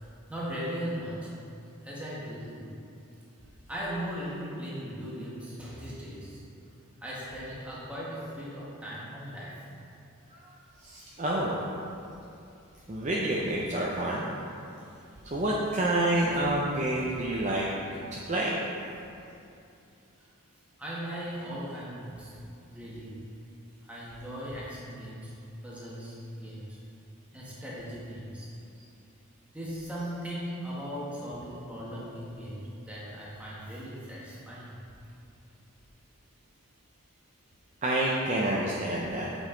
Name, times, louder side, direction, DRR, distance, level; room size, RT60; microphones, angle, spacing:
voice 1, 0.0-1.3 1.8-2.7 3.7-6.4 7.0-9.6 20.8-22.4 22.7-23.1 23.8-25.3 25.6-26.8 27.3-28.5 29.5-34.7, equal, 5° right, -7 dB, 1.4 m, -38 dB
voice 2, 10.8-11.6 12.9-14.3 15.2-17.7 18.1-18.5 37.8-39.3, right 1 dB, 30° right, -5 dB, 0.6 m, -28 dB
8.3 x 5.4 x 3.8 m, 2.7 s
head